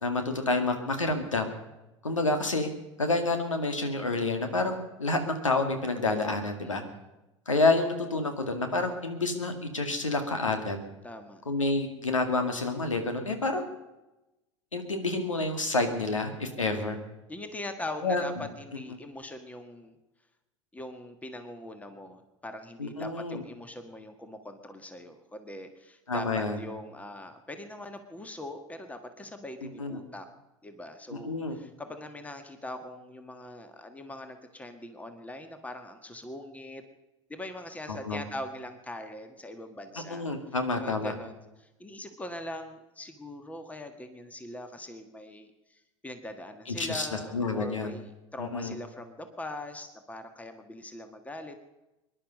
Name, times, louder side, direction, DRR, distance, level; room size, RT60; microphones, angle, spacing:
voice 1, 0.0-1.5 2.0-2.7 3.0-6.8 7.5-10.8 11.5-13.7 14.7-17.0 18.0-18.2 22.8-23.4 26.1-26.6 29.8-30.0 31.1-31.6 37.9-38.2 40.1-41.1 46.7-47.9 48.4-48.7, left 3 dB, 85° left, 6 dB, 2.0 m, -28 dB
voice 2, 6.6-7.0 11.0-11.4 16.6-17.0 17.3-19.9 20.7-30.3 30.6-36.8 37.3-40.2 40.8-51.6, left 1 dB, 10° left, 8 dB, 1.6 m, -42 dB
24.0 x 11.0 x 5.4 m, 1.0 s
figure-of-eight pair, 80°, 16 cm